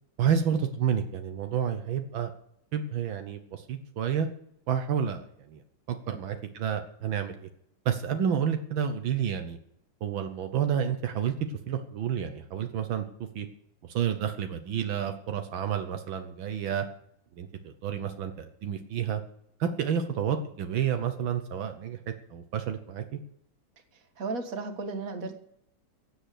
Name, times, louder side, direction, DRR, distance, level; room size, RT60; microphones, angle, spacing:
voice 1, 0.2-2.3 2.7-4.3 4.7-5.6 5.9-7.5 7.8-9.6 10.0-11.3 11.7-13.0 13.3-13.5 13.8-16.8 17.4-19.2 19.6-23.2, right 8 dB, 80° right, 7 dB, 1.7 m, -30 dB
voice 2, 23.9-25.4, right 3 dB, 45° right, 7 dB, 1.9 m, -35 dB
16.0 x 8.2 x 6.7 m, 0.73 s
omnidirectional pair, 2.2 m